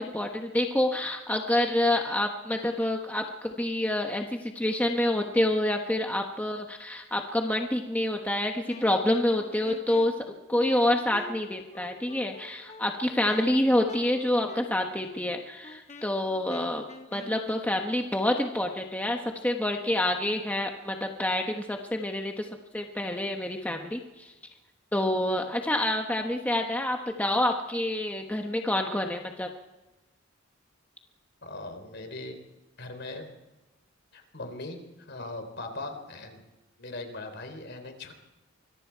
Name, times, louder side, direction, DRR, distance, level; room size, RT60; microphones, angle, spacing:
voice 1, 0.0-24.3 24.9-29.5, left 1 dB, 10° left, 3 dB, 1.2 m, -27 dB
Wind instrument woodwind instrument, 8.7-17.7, left 2 dB, 35° left, 1.6 m, -48 dB
voice 2, 31.4-32.4 32.8-33.3 34.1-34.8 35.1-36.4 36.8-38.1, left 2 dB, 55° left, 6 dB, 3.7 m, -39 dB
25.5 x 22.5 x 4.7 m, 1.1 s
head